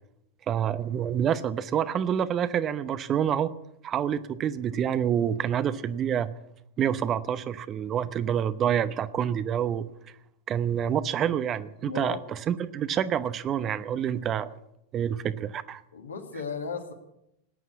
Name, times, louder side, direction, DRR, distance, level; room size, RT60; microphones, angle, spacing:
voice 1, 0.5-3.5 3.8-6.3 6.8-9.8 10.5-14.5 14.9-15.8, right 9 dB, 30° right, 14 dB, 0.8 m, -27 dB
voice 2, 11.8-12.2 15.9-16.9, left 5 dB, 75° left, 4 dB, 2.3 m, -35 dB
18.5 x 9.4 x 8.3 m, 0.80 s
figure-of-eight pair, 90°, 0 cm